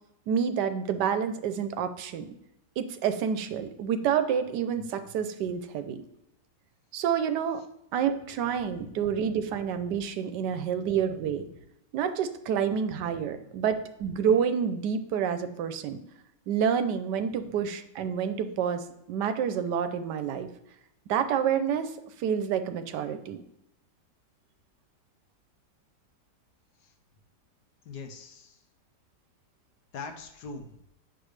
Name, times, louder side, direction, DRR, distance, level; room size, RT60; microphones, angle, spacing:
voice 1, 0.3-2.3 2.8-6.0 6.9-7.6 7.9-11.4 11.9-16.0 16.5-20.5 21.1-21.9 22.2-23.4, right 8 dB, 80° right, 10 dB, 1.3 m, -28 dB
voice 2, 8.7-9.2 10.4-11.6 12.5-13.1 13.4-13.7 17.2-17.6 26.8-26.9 27.8-28.6 29.9-30.8, left 4 dB, 75° left, 5 dB, 1.3 m, -45 dB
8.1 x 6.3 x 3.2 m, 0.80 s
omnidirectional pair, 1.8 m